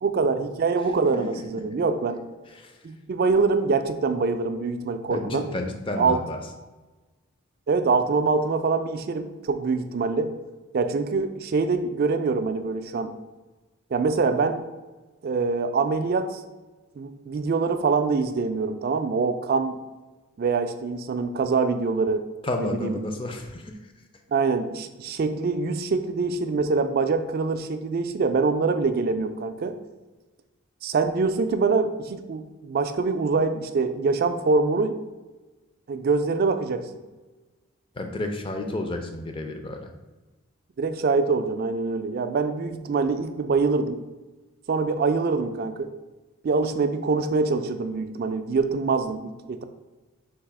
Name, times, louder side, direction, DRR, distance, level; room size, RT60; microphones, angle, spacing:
voice 1, 0.0-2.2 2.8-5.5 6.0-6.2 7.7-10.3 10.7-13.1 13.9-14.6 15.2-16.4 17.0-19.8 20.4-22.2 22.6-23.0 24.3-29.8 30.8-35.0 35.9-36.9 40.8-44.0 44.7-45.9 46.4-49.6, right 4 dB, 45° right, 9 dB, 0.3 m, -24 dB
voice 2, 2.5-2.8 5.1-6.4 22.4-23.8 37.9-39.9, left 2 dB, 25° left, 4 dB, 0.4 m, -31 dB
4.0 x 2.8 x 4.6 m, 1.2 s
head